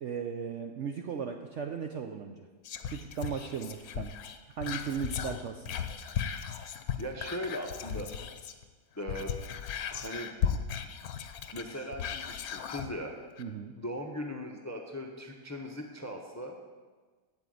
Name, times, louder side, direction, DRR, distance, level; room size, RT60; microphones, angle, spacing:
voice 1, 0.0-2.5 2.9-4.1 4.6-5.7 13.4-13.7, right 7 dB, 65° right, 5 dB, 0.7 m, -36 dB
Whispering, 2.6-8.6 9.0-12.9 13.4-13.5, left 8 dB, 65° left, 1.1 m, -36 dB
voice 2, 7.0-8.1 9.0-9.4 9.9-10.3 11.5-13.1 13.8-16.6, equal, 15° left, 3 dB, 0.5 m, -39 dB
8.9 x 8.1 x 7.8 m, 1.4 s
omnidirectional pair, 1.8 m